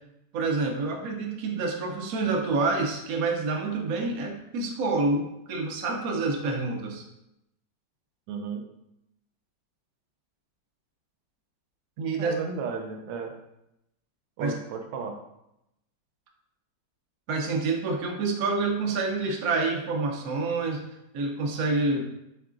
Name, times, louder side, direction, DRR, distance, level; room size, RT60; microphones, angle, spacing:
voice 1, 0.3-7.0 12.0-12.3 14.4-14.5 17.3-20.8 21.1-22.0, right 3 dB, 65° right, 2 dB, 1.0 m, -27 dB
voice 2, 8.3-8.6 12.2-13.3 14.4-15.1, right 5 dB, 80° right, 4 dB, 1.2 m, -34 dB
4.7 x 3.6 x 2.4 m, 0.84 s
omnidirectional pair, 1.9 m